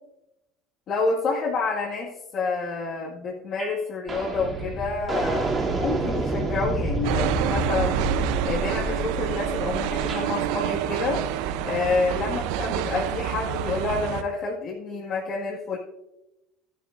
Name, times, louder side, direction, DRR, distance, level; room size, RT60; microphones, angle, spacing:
voice 1, 0.9-8.0 8.4-11.2 11.6-15.8, left 4 dB, 50° left, -4 dB, 1.9 m, -28 dB
sound 1, 3.6-3.8 4.1-10.3, right 2 dB, 25° right, 2.8 m, -28 dB
sound 2, 7.0-14.2, right 10 dB, 75° right, 0.6 m, -28 dB
12.5 x 10.5 x 2.6 m, 0.90 s
supercardioid pair, 120°, 0 cm